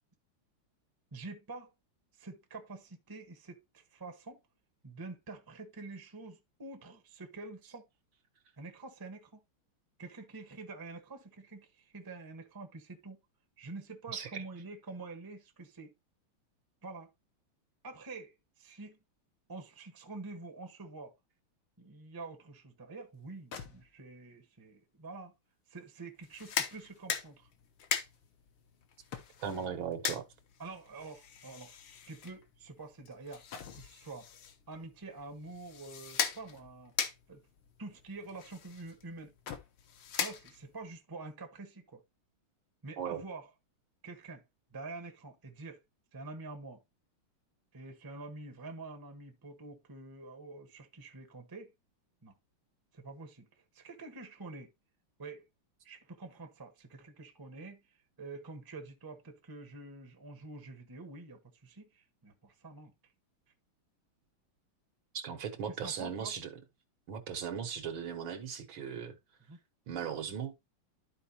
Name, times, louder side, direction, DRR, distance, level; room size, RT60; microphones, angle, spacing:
voice 1, 1.1-1.7 2.2-4.4 4.8-7.8 8.6-9.4 10.0-13.2 13.6-15.9 16.8-17.1 17.8-19.0 19.5-21.1 21.8-25.3 25.7-27.5 30.6-31.8 32.1-33.4 33.7-34.3 34.7-36.9 37.3-37.4 37.8-39.3 40.2-42.0 42.8-43.5 44.0-44.4 44.7-45.8 46.1-46.8 47.7-51.7 52.2-52.3 52.9-53.5 53.7-54.7 55.2-55.4 55.8-57.8 58.2-62.9 65.7-66.3 69.5-69.6, right 3 dB, 15° right, 0.9 m, -47 dB
voice 2, 14.1-14.4 29.4-30.3 43.0-43.2 65.1-66.5 67.1-69.2 69.9-70.5, right 7 dB, 70° right, 2.0 m, -38 dB
sound 1, 23.1-23.2 23.5-24.4 25.8-29.7 30.8-33.0 33.2-34.0 35.5-37.0 37.5-38.4 38.7-38.8 39.2-39.9 40.6-40.8, left 7 dB, 85° left, 2.2 m, -52 dB
sound 2, 26.2-40.9, left 8 dB, 70° left, 1.6 m, -40 dB
12.5 x 4.5 x 2.8 m
omnidirectional pair, 2.3 m